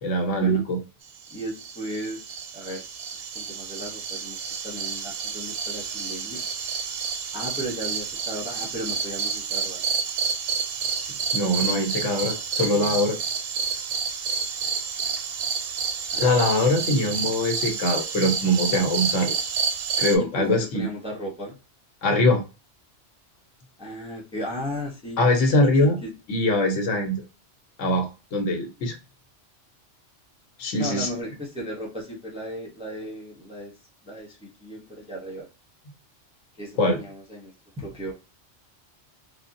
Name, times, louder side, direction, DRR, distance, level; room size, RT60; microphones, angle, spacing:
voice 1, 0.0-0.8 11.3-13.2 16.2-19.4 20.0-20.9 22.0-22.4 25.2-26.0 26.3-27.2 27.8-28.9 30.6-31.1 36.8-37.0, left 1 dB, 85° left, 4 dB, 1.1 m, -22 dB
voice 2, 1.3-2.8 3.2-4.4 4.6-6.4 7.3-9.8 16.1-17.0 20.2-21.6 23.8-26.1 28.5-28.9 30.8-33.7 34.0-35.5 36.6-38.1, equal, 5° right, -1 dB, 0.5 m, -36 dB
sound 1, 1.3-20.2, right 6 dB, 60° right, 0.7 m, -29 dB
3.6 x 2.0 x 2.6 m, 0.30 s
omnidirectional pair, 1.2 m